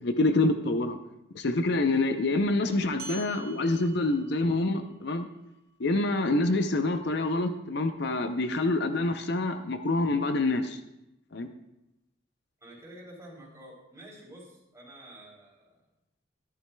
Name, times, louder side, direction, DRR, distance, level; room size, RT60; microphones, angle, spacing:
voice 1, 0.0-1.0 1.3-5.3 5.8-10.8 11.3-11.5, left 2 dB, 60° left, 8 dB, 0.5 m, -26 dB
sound 1, 3.0-7.8, right 3 dB, 55° right, 1.5 m, -49 dB
voice 2, 12.6-15.7, right 1 dB, 15° right, -5 dB, 3.3 m, -49 dB
13.5 x 11.0 x 2.2 m, 0.88 s
head